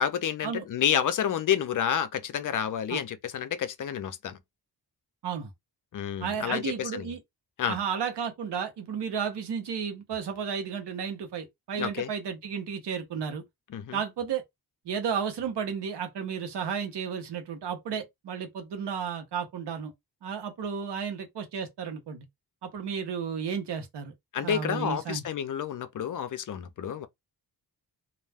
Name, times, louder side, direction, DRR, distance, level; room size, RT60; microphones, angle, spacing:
voice 1, 0.0-4.4 5.9-7.1 7.6-7.8 11.8-12.1 13.7-14.0 24.3-27.1, left 9 dB, 50° left, 0.5 m, -29 dB
voice 2, 6.2-7.2 7.6-13.4 13.9-14.4 14.8-19.9 20.2-22.3 22.6-24.1 24.4-25.2, right 7 dB, 90° right, 0.9 m, -33 dB
2.4 x 2.1 x 3.3 m
wide cardioid pair, 135°, 40 cm